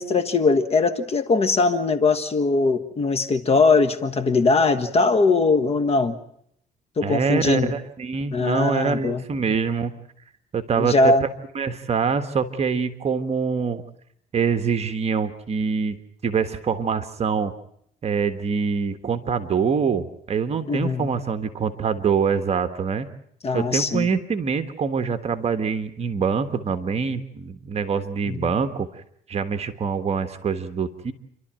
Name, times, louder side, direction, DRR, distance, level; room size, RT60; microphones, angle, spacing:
voice 1, 0.0-6.2 7.0-7.7 8.3-9.2 10.8-11.2 20.7-21.1 23.4-24.1 28.3-28.5, left 3 dB, 35° left, 10 dB, 1.5 m, -20 dB
voice 2, 7.0-9.9 10.5-11.3 11.5-13.8 14.3-17.5 18.0-23.1 23.5-28.9 29.3-31.1, right 5 dB, 40° right, 9 dB, 1.5 m, -25 dB
29.5 x 12.5 x 9.0 m, 0.71 s
cardioid pair, 110°, 17 cm